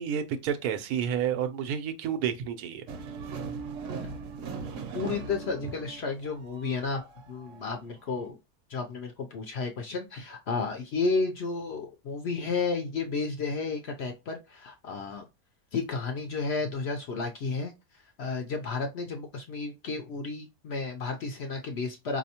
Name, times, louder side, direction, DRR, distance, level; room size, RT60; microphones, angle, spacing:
voice 1, 0.0-2.8, right 8 dB, 90° right, 1.1 m, -30 dB
sound 1, 2.9-7.9, right 5 dB, 65° right, 0.9 m, -39 dB
voice 2, 4.9-8.4 8.7-15.3 15.7-22.2, left 4 dB, 60° left, 0.7 m, -32 dB
4.2 x 2.7 x 2.8 m
omnidirectional pair, 1.5 m